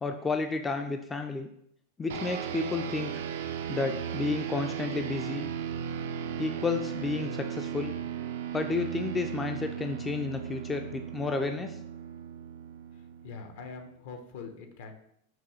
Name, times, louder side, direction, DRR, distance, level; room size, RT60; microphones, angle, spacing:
voice 1, 0.0-1.5 2.0-3.2 3.7-5.5 6.4-7.9 8.5-11.8, left 4 dB, 15° left, 6 dB, 0.3 m, -31 dB
sound 1, 2.1-13.8, right 8 dB, 75° right, 0.4 m, -36 dB
voice 2, 12.9-15.0, left 4 dB, 70° left, 6 dB, 0.8 m, -44 dB
5.9 x 2.3 x 3.1 m, 0.74 s
hypercardioid pair, 125°, 0 cm